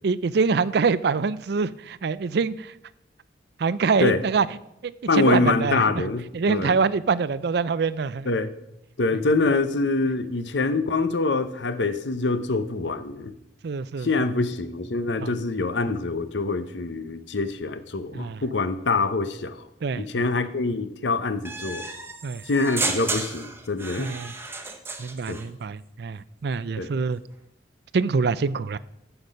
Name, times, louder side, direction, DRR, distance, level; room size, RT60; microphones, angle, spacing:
voice 1, 0.0-2.7 3.6-4.5 4.8-5.8 6.3-8.3 13.6-14.1 15.2-15.3 18.1-18.4 19.8-20.2 22.2-22.4 24.0-24.3 25.0-27.2 27.9-28.8, right 5 dB, 65° right, 17 dB, 0.4 m, -25 dB
voice 2, 5.1-6.8 8.2-8.5 9.0-13.3 14.0-19.6 20.0-21.8 22.5-24.1 25.3-25.4 26.8-26.9, left 3 dB, 80° left, 12 dB, 0.8 m, -25 dB
sound 1, 21.4-25.5, right 3 dB, 15° right, 0.9 m, -32 dB
14.5 x 6.0 x 5.3 m, 0.83 s
head